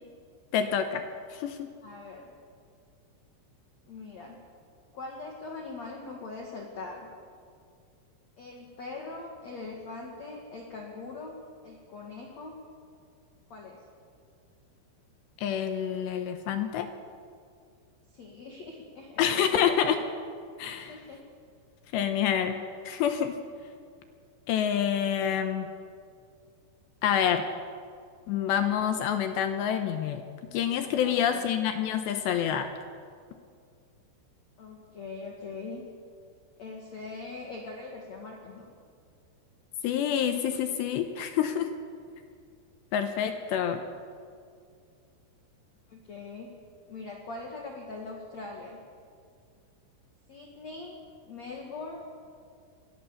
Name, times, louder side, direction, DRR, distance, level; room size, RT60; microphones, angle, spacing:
voice 1, 0.5-1.7 15.4-16.9 19.2-20.0 20.6-20.9 21.9-23.3 24.5-25.7 27.0-27.4 28.3-30.2 30.5-32.7 39.8-41.7 42.9-43.8, left 9 dB, 75° left, 7 dB, 2.8 m, -27 dB
voice 2, 1.8-2.3 3.9-4.4 4.9-7.1 8.4-11.4 11.6-12.6 13.5-13.8 18.1-19.7 20.8-21.2 31.0-31.5 34.6-35.8 36.6-38.6 45.9-46.5 46.9-48.8 50.3-51.0 51.2-52.0, left 3 dB, 50° left, 0 dB, 2.1 m, -41 dB
22.5 x 16.5 x 7.1 m, 2.2 s
omnidirectional pair, 5.5 m